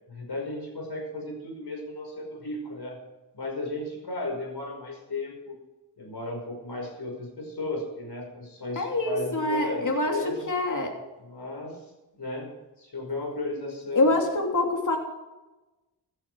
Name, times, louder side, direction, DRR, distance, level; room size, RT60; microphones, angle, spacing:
voice 1, 0.1-3.0 3.3-5.5 6.0-10.4 11.2-11.8 12.2-12.5 12.8-14.1, left 2 dB, 65° left, 1 dB, 5.5 m, -35 dB
voice 2, 8.7-10.9 13.9-15.0, left 2 dB, 45° left, 2 dB, 3.2 m, -25 dB
16.5 x 11.0 x 4.9 m, 1.1 s
wide cardioid pair, 90°, 42 cm